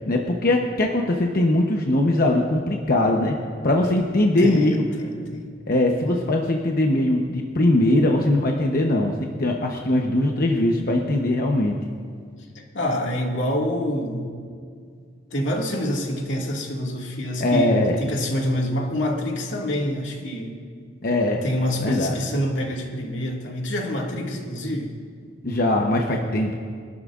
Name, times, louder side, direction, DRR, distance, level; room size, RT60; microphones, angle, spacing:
voice 1, 0.1-3.4 3.6-4.8 5.7-9.1 9.4-11.7 17.4-18.0 21.0-21.4 21.8-22.2 25.4-26.6, left 1 dB, 50° left, 1 dB, 0.9 m, -21 dB
voice 2, 4.4-5.5 12.5-14.4 15.3-20.5 21.4-24.9, equal, 85° left, 0 dB, 2.1 m, -27 dB
24.5 x 12.5 x 2.5 m, 2.1 s
head